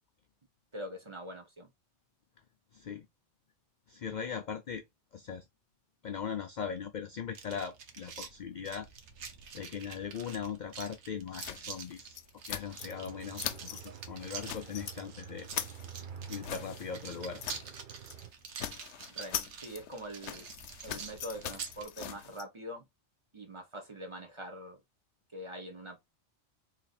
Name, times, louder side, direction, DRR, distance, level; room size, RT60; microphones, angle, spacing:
voice 1, 0.7-1.7 19.1-20.5 20.8-22.9 23.3-24.8 25.3-26.0, equal, 25° right, 1.1 m, -44 dB
voice 2, 2.7-3.1 3.9-4.8 5.1-5.5 6.0-8.9 9.5-12.2 12.4-15.5 16.3-17.4, left 7 dB, 60° left, 0.5 m, -39 dB
sound 1, 7.3-21.9, right 6 dB, 75° right, 1.1 m, -47 dB
sound 2, 11.4-13.1 13.3-13.9 14.2-15.0 15.3-17.8 18.0-18.2 18.5-22.4, left 10 dB, 75° left, 0.9 m, -41 dB
sound 3, 12.8-18.3, right 8 dB, 55° right, 0.6 m, -48 dB
3.4 x 2.9 x 4.1 m
omnidirectional pair, 1.2 m